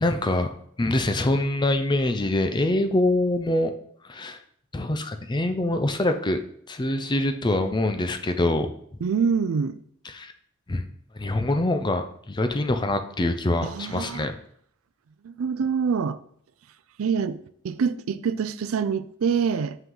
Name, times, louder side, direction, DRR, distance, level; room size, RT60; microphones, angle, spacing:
voice 1, 0.0-0.5 0.8-3.7 4.0-4.4 4.7-6.4 6.7-8.7 10.0-10.3 10.7-10.9 11.1-14.3, left 1 dB, 20° left, 0.5 m, -24 dB
voice 2, 9.0-9.8 13.6-14.3 15.2-16.2 17.0-19.8, right 6 dB, 85° right, 0.4 m, -25 dB
5.7 x 5.6 x 3.8 m
head